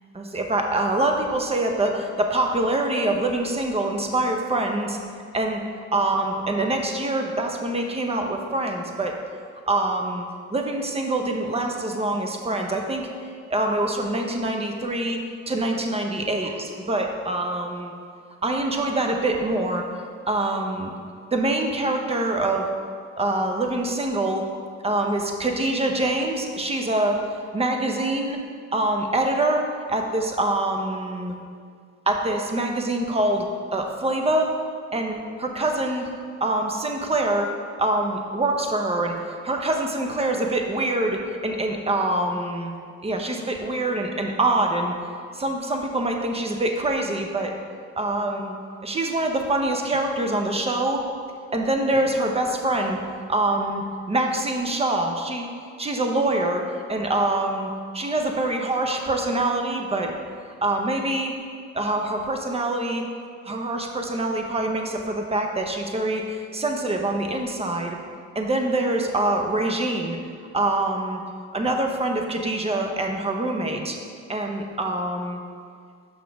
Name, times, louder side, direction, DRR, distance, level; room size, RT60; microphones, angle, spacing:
voice 1, 0.1-5.0 5.3-5.6 5.9-9.2 9.7-13.1 13.5-17.9 18.4-19.8 20.3-20.9 21.3-22.7 23.2-24.4 24.8-27.2 27.5-28.4 28.7-31.3 32.1-34.6 34.9-36.1 36.4-37.5 37.8-42.7 43.0-44.9 45.3-47.5 47.9-48.6 48.8-51.0 51.5-53.0 53.3-55.5 55.8-56.6 56.9-60.1 60.6-61.3 61.7-63.0 63.4-68.0 68.3-70.2 70.5-71.2 71.5-74.0 74.3-75.4, right 2 dB, 20° right, 3 dB, 0.8 m, -25 dB
6.3 x 5.9 x 3.5 m, 2.1 s
cardioid pair, 90°, 30 cm